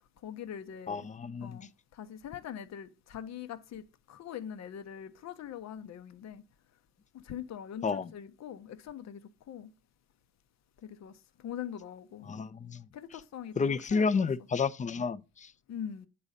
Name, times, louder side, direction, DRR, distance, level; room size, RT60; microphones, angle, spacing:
voice 1, 0.2-1.1 1.4-6.4 7.1-9.7 10.8-11.1 11.4-12.3 12.9-14.3 15.7-16.1, left 9 dB, 60° left, 0.8 m, -42 dB
voice 2, 0.9-1.7 7.8-8.1 12.3-12.8 13.6-15.5, left 5 dB, 25° left, 0.5 m, -31 dB
8.6 x 4.2 x 6.5 m
cardioid pair, 90°, 30 cm